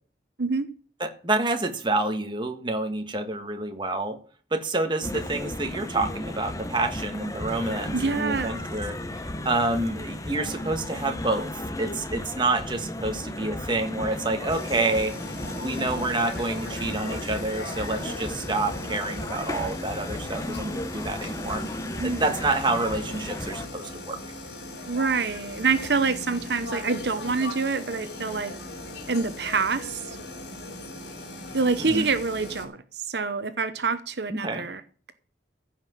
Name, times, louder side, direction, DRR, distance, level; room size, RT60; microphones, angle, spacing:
voice 1, 1.0-4.2 4.5-9.0 9.4-11.5 11.8-15.1 15.6-21.6 22.0-24.2 31.8-32.1 34.3-34.7, right 2 dB, 25° right, 6 dB, 1.6 m, -28 dB
sound 1, 5.0-23.7, left 1 dB, 20° left, 1.0 m, -35 dB
voice 2, 7.9-8.7 22.0-22.2 24.9-28.5 29.1-30.2 31.5-34.8, right 4 dB, 70° right, 11 dB, 0.9 m, -26 dB
sound 2, 14.5-32.6, left 1 dB, 85° left, 3.9 m, -39 dB
15.0 x 5.9 x 7.5 m, 0.43 s
head